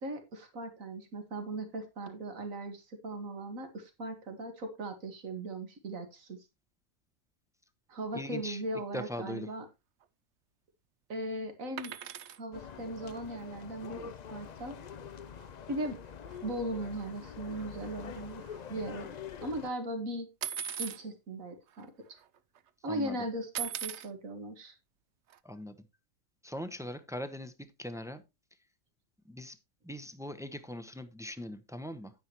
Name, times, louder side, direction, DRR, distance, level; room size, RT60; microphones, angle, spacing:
voice 1, 0.0-6.4 7.9-9.7 11.1-11.9 12.4-14.8 15.7-16.0 16.4-18.4 18.7-20.3 20.8-22.2 22.8-24.8, right 1 dB, 80° right, 6 dB, 2.2 m, -38 dB
voice 2, 8.1-8.6 8.9-9.5 22.9-23.2 25.4-25.7 26.4-28.2 29.3-29.6 29.8-32.1, left 1 dB, 5° right, 10 dB, 0.7 m, -40 dB
sound 1, 11.8-12.4 14.6-14.7 14.9-15.1 15.4-15.5 16.3-16.4 16.9-17.3 17.5-19.0 20.4-21.0 21.8-21.9 22.1-22.6 23.5-24.1 25.3-25.4, right 9 dB, 65° right, 0.9 m, -39 dB
sound 2, 12.5-19.7, left 7 dB, 55° left, 0.4 m, -45 dB
9.7 x 9.6 x 3.0 m, 0.23 s
omnidirectional pair, 1.4 m